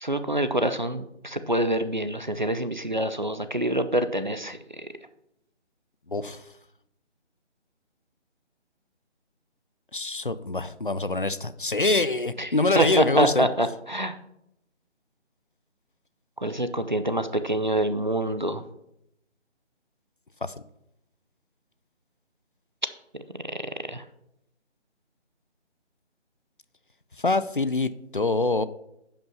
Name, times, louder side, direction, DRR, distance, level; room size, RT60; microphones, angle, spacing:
voice 1, 0.0-4.9 12.4-12.5 12.7-14.2 16.4-18.6 23.9-24.0, right 1 dB, 40° right, 11 dB, 0.5 m, -26 dB
voice 2, 6.1-6.4 9.9-13.5 20.4-20.5 27.2-28.6, left 3 dB, 45° left, 15 dB, 0.4 m, -25 dB
10.5 x 5.5 x 5.5 m, 0.82 s
figure-of-eight pair, 180°, 36 cm